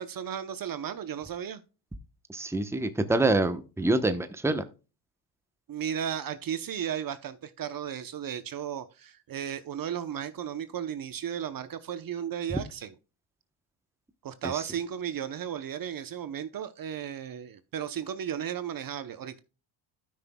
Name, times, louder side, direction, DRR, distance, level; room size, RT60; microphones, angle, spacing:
voice 1, 0.0-1.6 5.7-12.9 14.2-19.4, right 9 dB, 45° right, 0.8 m, -35 dB
voice 2, 2.3-4.6 12.5-12.6 14.4-14.5, right 2 dB, 5° right, 0.9 m, -26 dB
13.0 x 5.9 x 2.2 m
supercardioid pair, 85°, 49 cm